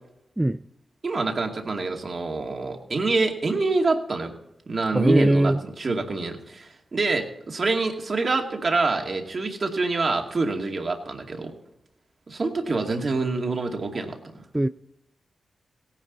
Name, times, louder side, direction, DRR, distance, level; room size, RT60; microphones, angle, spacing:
voice 1, 1.0-4.3 4.7-11.5 12.3-14.4, right 3 dB, 50° right, 2 dB, 2.4 m, -26 dB
voice 2, 4.9-5.6 14.5-14.7, right 1 dB, 15° right, 11 dB, 0.4 m, -20 dB
17.5 x 10.0 x 4.1 m, 0.86 s
cardioid pair, 55°, 0 cm